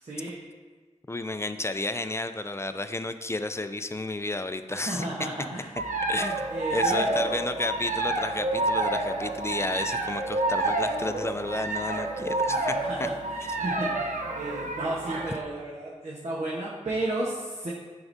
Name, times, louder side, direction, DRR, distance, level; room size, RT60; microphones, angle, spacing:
voice 1, 0.0-0.4 4.7-5.8 6.5-7.1 12.4-17.7, right 2 dB, 60° right, -5 dB, 1.1 m, -33 dB
voice 2, 1.1-5.1 6.1-13.1, left 2 dB, 20° left, 9 dB, 0.4 m, -32 dB
sound 1, 5.8-15.4, right 2 dB, 80° right, 0.7 m, -29 dB
9.4 x 4.9 x 2.7 m, 1.4 s
wide cardioid pair, 75°, 13 cm